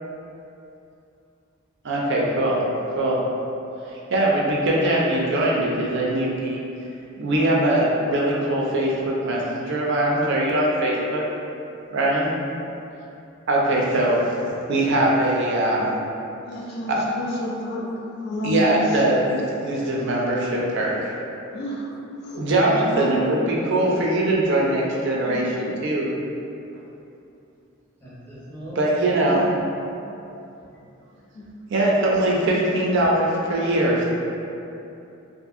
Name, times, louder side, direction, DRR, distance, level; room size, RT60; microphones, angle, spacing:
voice 1, 1.8-2.6 3.0-3.2 4.1-6.6 7.2-11.2 11.9-12.3 13.5-16.0 16.9-17.0 18.4-21.1 22.4-26.1 28.8-29.4 31.7-34.1, right 1 dB, 55° right, -4 dB, 0.4 m, -21 dB
voice 2, 2.6-3.0 16.4-17.9 18.2-19.1 21.5-21.9 22.2-22.5 22.8-23.1 25.2-25.4 31.3-31.4, equal, 50° left, -3 dB, 0.4 m, -30 dB
voice 3, 28.0-29.6, equal, 10° left, -10 dB, 0.6 m, -35 dB
2.6 x 2.6 x 2.4 m, 2.8 s
head